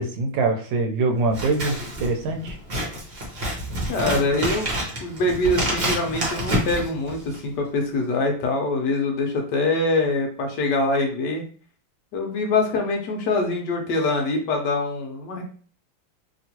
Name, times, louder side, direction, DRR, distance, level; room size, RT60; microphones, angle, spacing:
voice 1, 0.0-2.6, right 3 dB, 80° right, 4 dB, 1.3 m, -24 dB
Scissors, 1.3-7.5, right 1 dB, 40° right, 1.0 m, -28 dB
voice 2, 3.9-4.7 5.0-11.4 12.1-15.4, left 2 dB, 70° left, 3 dB, 1.2 m, -24 dB
3.0 x 2.9 x 2.8 m, 0.43 s
omnidirectional pair, 2.1 m